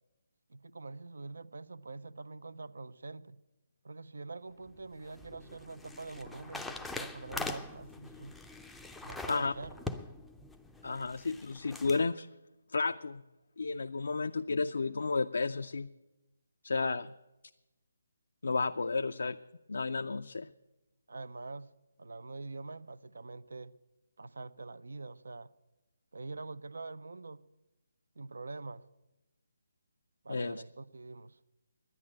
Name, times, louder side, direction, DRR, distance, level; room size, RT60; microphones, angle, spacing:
voice 1, 0.5-3.4 3.8-8.4 9.0-9.9 21.1-21.7 22.0-23.7 24.2-25.5 26.1-27.4 28.2-28.8 30.2-31.4, right 3 dB, 70° right, 0.5 m, -45 dB
sound 1, 4.7-12.0, left 3 dB, 5° left, 0.5 m, -43 dB
voice 2, 10.8-12.3 12.7-13.2 13.6-15.9 16.6-17.1 18.4-19.4 19.7-20.5 30.3-30.6, left 4 dB, 70° left, 0.4 m, -32 dB
11.0 x 9.8 x 8.8 m
figure-of-eight pair, 150°, 0 cm